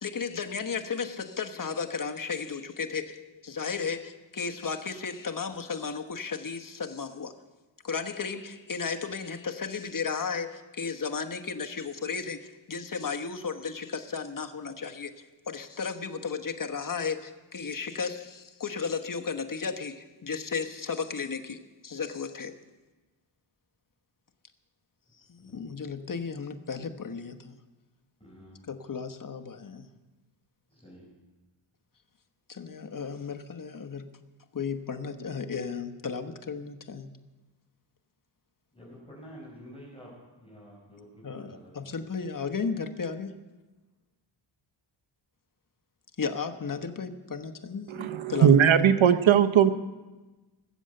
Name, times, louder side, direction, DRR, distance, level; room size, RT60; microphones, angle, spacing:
voice 1, 0.0-7.3 7.8-22.6 25.2-27.6 28.7-29.9 32.5-34.1 34.5-37.1 41.2-43.3 46.2-48.6, left 5 dB, 40° left, 6 dB, 1.2 m, -34 dB
voice 2, 28.2-28.6 30.7-31.0 38.7-41.7, equal, 10° left, -5 dB, 4.8 m, -49 dB
voice 3, 47.9-49.7, right 9 dB, 70° right, 10 dB, 0.9 m, -19 dB
19.0 x 7.9 x 7.7 m, 1.2 s
wide cardioid pair, 75°, 50 cm